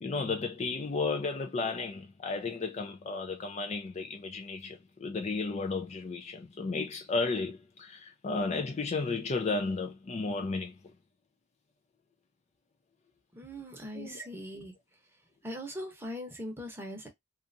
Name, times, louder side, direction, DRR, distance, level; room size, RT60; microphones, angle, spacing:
voice 1, 0.0-10.7 13.9-14.2, left 3 dB, 35° left, 0.4 m, -33 dB
voice 2, 13.3-14.8 15.4-17.1, equal, 10° right, 0.9 m, -40 dB
2.7 x 2.4 x 2.5 m
head